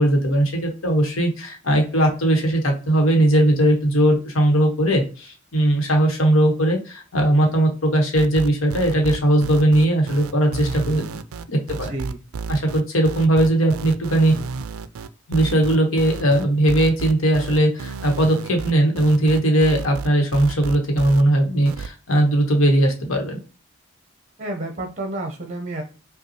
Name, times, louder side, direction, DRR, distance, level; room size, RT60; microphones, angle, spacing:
voice 1, 0.0-11.2 11.5-11.9 12.5-14.4 15.3-23.4, right 1 dB, 75° left, 2 dB, 1.2 m, -19 dB
sound 1, 8.1-21.2 21.7-21.9, right 5 dB, 85° right, 0.4 m, -32 dB
voice 2, 11.7-12.2 24.4-25.8, right 2 dB, 35° right, 4 dB, 0.7 m, -30 dB
5.3 x 2.3 x 2.9 m, 0.35 s
head